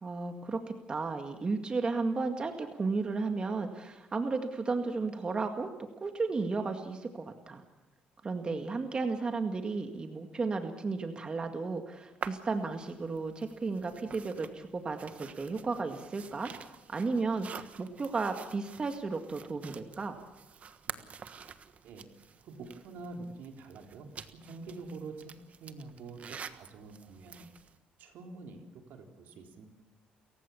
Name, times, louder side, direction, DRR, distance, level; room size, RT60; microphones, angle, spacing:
voice 1, 0.0-5.7 6.0-7.6 8.2-16.5 16.9-20.2, right 4 dB, 30° right, 5 dB, 2.0 m, -34 dB
sound 1, 12.2-27.8, right 7 dB, 45° right, 1.4 m, -48 dB
voice 2, 22.4-25.3 25.6-27.5 28.0-29.6, right 3 dB, 75° right, 3 dB, 3.8 m, -46 dB
29.0 x 15.5 x 7.2 m, 0.99 s
cardioid pair, 100°, 3 cm